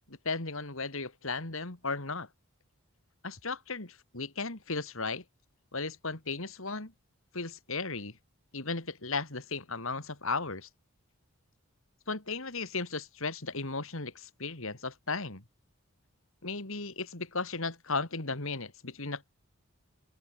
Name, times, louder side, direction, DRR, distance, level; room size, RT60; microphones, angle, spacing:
voice 1, 0.1-2.3 3.2-5.2 5.7-6.9 7.3-8.2 8.5-10.7 12.1-15.4 16.4-19.3, left 3 dB, 65° left, 2.9 m, -35 dB
open air
head